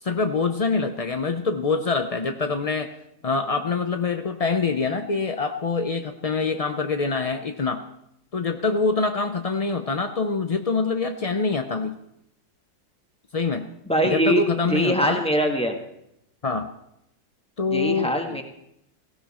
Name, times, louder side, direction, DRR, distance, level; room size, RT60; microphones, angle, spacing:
voice 1, 0.0-2.9 3.2-7.8 8.3-12.0 13.3-13.7 14.0-15.2 16.4-16.7 17.6-18.4, left 4 dB, 60° left, 7 dB, 0.3 m, -25 dB
voice 2, 13.9-15.8 17.7-18.4, equal, 5° left, 3 dB, 1.5 m, -23 dB
17.0 x 15.5 x 4.3 m, 0.79 s
omnidirectional pair, 1.7 m